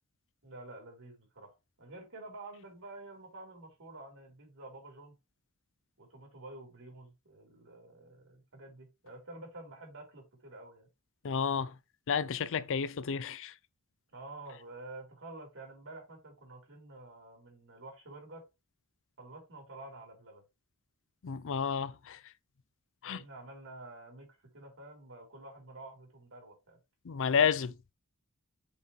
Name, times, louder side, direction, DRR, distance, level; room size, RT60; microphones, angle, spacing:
voice 1, 0.4-5.2 6.0-10.9 14.1-18.4 19.2-20.4 23.0-24.3 24.5-26.8, right 2 dB, 60° right, 3.5 m, -49 dB
voice 2, 11.2-11.7 12.1-13.5 21.2-22.2 23.0-23.2 27.1-27.9, left 6 dB, 60° left, 0.5 m, -31 dB
7.2 x 4.7 x 3.1 m
head